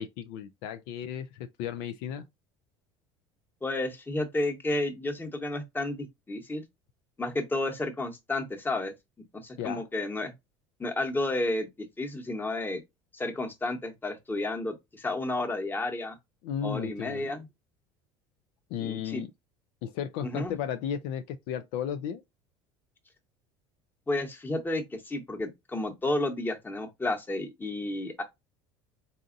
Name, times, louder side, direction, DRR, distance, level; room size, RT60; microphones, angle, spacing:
voice 1, 0.0-2.2 9.6-9.9 16.4-17.3 18.7-19.3 19.8-22.2, left 8 dB, 70° left, 0.4 m, -34 dB
voice 2, 3.6-6.6 7.2-8.9 9.3-10.3 10.8-11.7 12.0-12.8 13.1-16.2 16.6-17.5 18.8-19.2 20.2-20.6 24.1-28.2, left 2 dB, 15° left, 1.1 m, -31 dB
4.1 x 2.4 x 2.5 m
hypercardioid pair, 80°, 13 cm